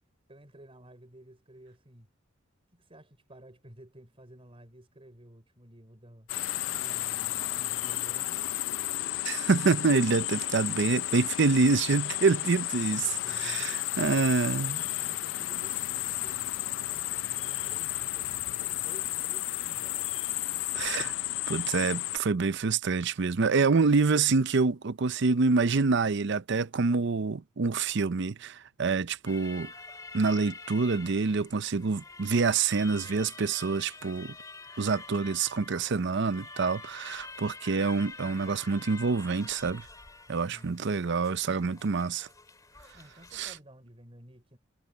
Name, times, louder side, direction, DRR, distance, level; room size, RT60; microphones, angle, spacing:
voice 1, 0.3-2.1 2.7-6.3 6.8-8.4 13.2-13.9 14.8-20.1 40.5-40.9 42.9-44.6, right 1 dB, 30° right, 4.9 m, -53 dB
sound 1, 6.3-22.2, left 15 dB, 85° left, 0.4 m, -32 dB
voice 2, 9.2-14.8 20.7-21.1 21.5-29.7 30.1-34.4 34.8-39.9 40.3-42.3 43.3-43.5, right 4 dB, 65° right, 0.6 m, -26 dB
sound 2, 29.3-43.6, left 3 dB, 20° left, 2.1 m, -47 dB
head